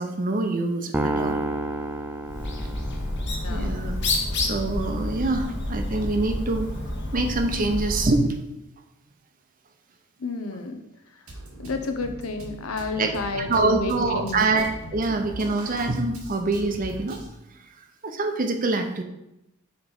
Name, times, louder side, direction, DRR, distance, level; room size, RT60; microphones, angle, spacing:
voice 1, 0.0-1.4 3.5-3.9 4.3-6.7 7.1-8.4 13.0-13.1 13.4-17.2 17.8-19.0, right 3 dB, 40° right, 5 dB, 0.7 m, -25 dB
sound 1, 0.9-3.3, right 2 dB, 10° right, 0.4 m, -29 dB
Bird, 2.2-8.2, left 1 dB, 55° left, 1.1 m, -29 dB
voice 2, 3.4-3.8 10.2-10.8 11.1-11.2 11.6-14.5, left 3 dB, 75° left, 7 dB, 0.7 m, -31 dB
Drum kit, 11.3-17.3, equal, 75° right, 1.4 m, -40 dB
5.1 x 4.4 x 5.4 m, 0.90 s
head